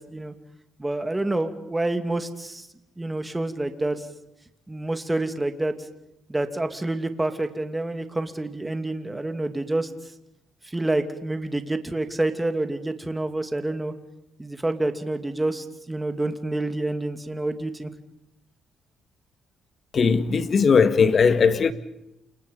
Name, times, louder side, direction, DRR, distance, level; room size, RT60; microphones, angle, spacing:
voice 1, 0.8-2.7 3.0-4.0 4.7-5.7 6.3-9.9 10.6-13.9 14.4-17.9, right 2 dB, 15° right, 2.5 m, -28 dB
voice 2, 19.9-21.7, left 5 dB, 45° left, 1.9 m, -18 dB
29.0 x 27.0 x 5.5 m
cardioid pair, 90°, 0 cm